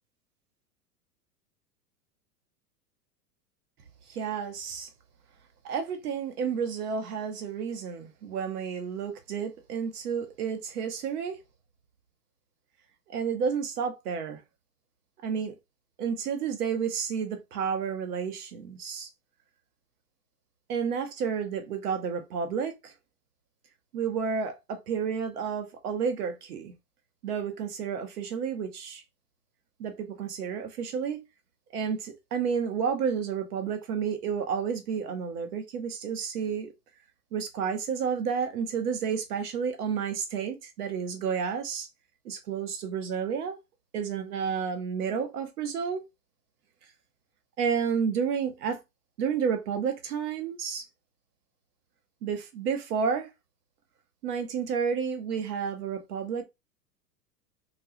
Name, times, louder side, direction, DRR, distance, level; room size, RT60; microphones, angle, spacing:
voice 1, 4.1-4.9 5.6-11.4 13.1-14.4 15.2-15.6 16.0-19.1 20.7-22.9 23.9-26.7 27.2-29.0 29.8-31.2 31.7-36.7 37.3-41.9 42.2-43.6 43.9-46.0 47.6-48.8 49.2-50.9 52.2-53.3 54.2-56.4, right 6 dB, 70° right, 0.9 m, -31 dB
2.3 x 2.3 x 2.7 m
hypercardioid pair, 100°, 48 cm